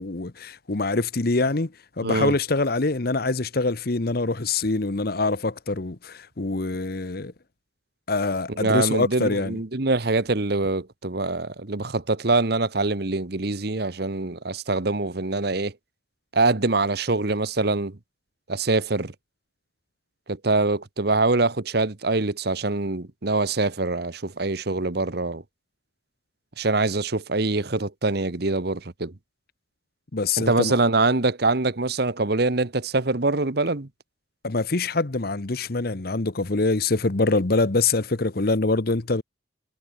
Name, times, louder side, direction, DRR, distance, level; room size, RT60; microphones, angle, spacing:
voice 1, 0.0-1.7 2.0-7.3 8.1-9.6 30.1-30.8 34.4-39.2, left 3 dB, 50° left, 1.0 m, -24 dB
voice 2, 2.0-2.3 8.6-15.7 16.3-18.0 18.5-19.1 20.3-25.4 26.6-29.1 30.4-33.9, right 3 dB, 55° right, 1.2 m, -24 dB
head